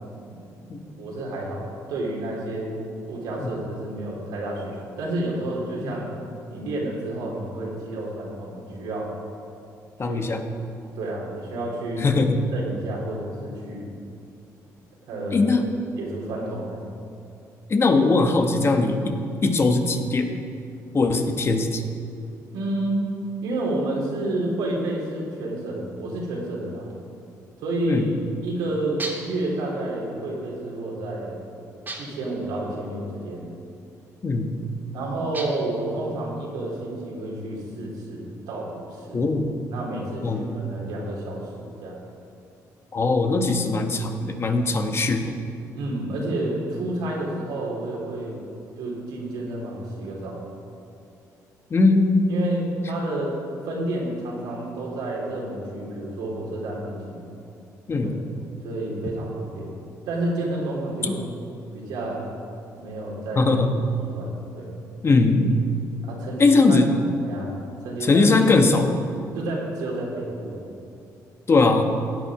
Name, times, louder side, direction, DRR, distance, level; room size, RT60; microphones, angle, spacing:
voice 1, 0.8-6.1 6.5-9.1 10.1-10.2 10.9-12.1 12.5-13.9 15.1-15.5 16.0-16.9 22.5-23.1 23.4-26.9 27.6-28.1 28.4-31.4 32.0-33.5 34.9-39.2 39.7-42.0 45.7-48.4 48.8-50.4 52.3-53.3 53.6-57.2 58.0-58.1 58.6-59.7 60.1-61.2 61.7-62.3 62.7-63.5 64.0-64.7 66.0-66.8 67.2-67.5 67.8-68.3 69.3-70.6, right 1 dB, 85° right, -3 dB, 3.4 m, -30 dB
voice 2, 10.0-10.4 12.0-12.5 15.3-15.7 17.7-20.3 20.9-21.8 27.8-28.1 34.2-34.5 39.1-39.6 40.2-40.5 42.9-45.3 51.7-52.3 57.9-58.1 61.0-61.1 63.4-63.8 65.0-65.6 66.4-66.9 68.0-69.0 71.5-71.8, left 3 dB, 40° left, 5 dB, 1.3 m, -20 dB
sound 1, 29.0-29.4 31.9-32.3 35.3-35.8, right 2 dB, 30° right, 2.4 m, -35 dB
16.5 x 8.6 x 5.0 m, 2.5 s
cardioid pair, 80°, 7 cm